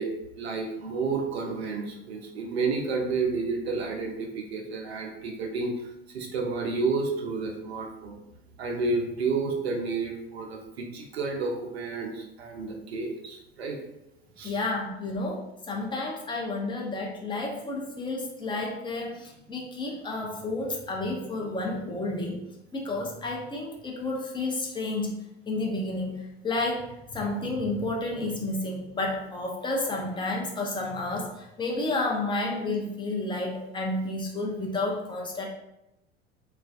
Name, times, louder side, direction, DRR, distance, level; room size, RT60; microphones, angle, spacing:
voice 1, 0.0-5.7 6.1-8.2 8.6-13.8 14.4-14.5, right 4 dB, 80° right, 2 dB, 0.5 m, -30 dB
voice 2, 14.4-22.4 22.7-35.4, left 2 dB, 15° left, -1 dB, 0.6 m, -31 dB
2.4 x 2.2 x 2.3 m, 0.88 s
figure-of-eight pair, 70°, 32 cm